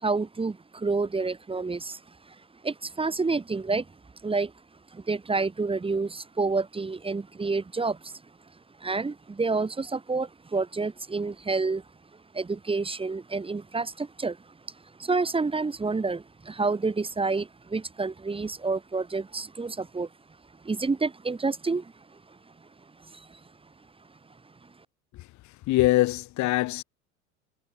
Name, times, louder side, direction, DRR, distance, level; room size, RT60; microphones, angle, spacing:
voice 1, 0.0-2.0 2.6-3.8 4.2-4.5 4.9-8.1 8.8-11.8 12.3-14.4 15.0-20.1 20.6-21.9 23.1-23.2, right 3 dB, 15° right, 4.2 m, -28 dB
voice 2, 25.7-26.8, left 18 dB, 40° left, 3.8 m, -23 dB
figure-of-eight pair, 80°, 42 cm